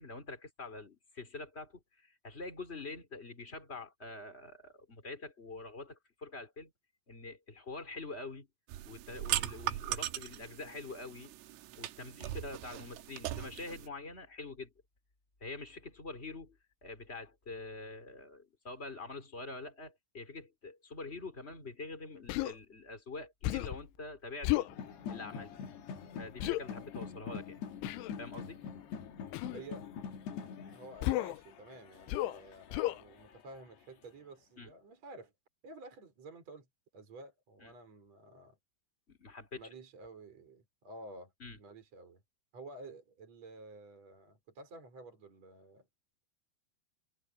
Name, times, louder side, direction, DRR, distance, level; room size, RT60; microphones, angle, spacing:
voice 1, 0.0-6.7 7.1-8.5 8.8-11.3 11.8-14.7 15.4-24.8 25.1-25.6 26.2-27.6 28.2-28.6 34.6-34.7 37.6-37.7 39.1-39.6 41.4-41.6, left 3 dB, 15° left, 3.0 m, -45 dB
sound 1, 8.7-13.9, right 15 dB, 85° right, 3.6 m, -39 dB
Human voice, 22.3-22.6 23.4-23.8 24.4-24.7 26.4-26.6 27.8-28.1 29.3-29.6 31.0-31.4 32.1-32.4 32.7-33.0, left 16 dB, 75° left, 3.1 m, -33 dB
sound 2, 24.7-33.6, left 6 dB, 60° left, 3.6 m, -45 dB
voice 2, 29.5-29.9 30.7-35.3 35.6-36.7 36.9-38.6 39.5-41.3 41.6-42.2 42.5-45.9, right 2 dB, 30° right, 6.3 m, -51 dB
omnidirectional pair, 5.9 m